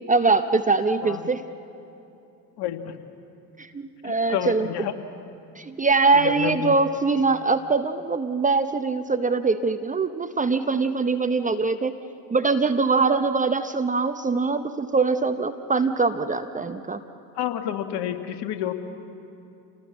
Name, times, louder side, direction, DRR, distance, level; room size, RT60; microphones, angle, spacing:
voice 1, 0.1-1.4 3.6-4.7 5.6-12.0 12.3-17.0, right 4 dB, 15° right, 9 dB, 0.9 m, -23 dB
voice 2, 2.6-3.0 4.0-4.9 6.1-6.8 17.4-18.7, left 10 dB, 50° left, 7 dB, 1.9 m, -29 dB
27.5 x 18.5 x 7.5 m, 2.8 s
hypercardioid pair, 75°, 49 cm